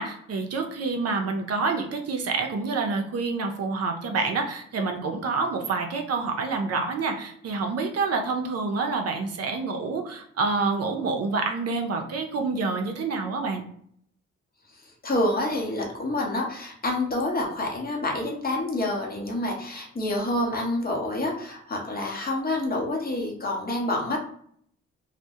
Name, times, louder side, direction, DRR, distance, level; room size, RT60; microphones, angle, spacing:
voice 1, 0.0-13.6, right 4 dB, 55° right, 4 dB, 0.5 m, -27 dB
voice 2, 14.7-24.2, left 1 dB, 30° left, 0 dB, 0.8 m, -28 dB
2.2 x 2.1 x 2.8 m, 0.65 s
supercardioid pair, 55°, 29 cm